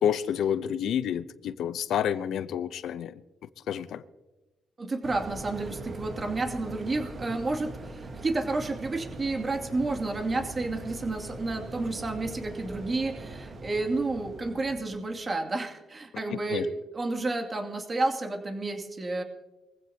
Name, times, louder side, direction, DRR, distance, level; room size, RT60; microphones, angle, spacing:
voice 1, 0.0-3.1 3.7-4.0 16.5-16.7, left 9 dB, 75° left, 0.7 m, -29 dB
voice 2, 4.8-16.7 16.9-19.2, right 2 dB, 30° right, 2.5 m, -31 dB
sound 1, 5.0-15.2, right 2 dB, 50° right, 3.9 m, -42 dB
23.0 x 15.5 x 2.9 m
cardioid pair, 90°, 0 cm